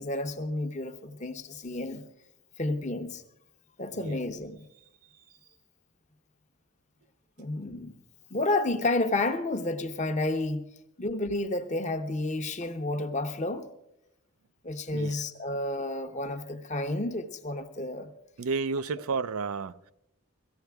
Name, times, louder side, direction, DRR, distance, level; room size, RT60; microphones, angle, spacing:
voice 1, 0.0-2.0 2.6-3.2 3.8-4.7 7.4-8.0 8.3-10.7 11.0-13.7 14.6-18.1, left 2 dB, 35° left, 0.9 m, -31 dB
voice 2, 14.9-15.2 18.4-19.9, right 4 dB, 85° right, 0.5 m, -32 dB
17.5 x 15.0 x 3.5 m
head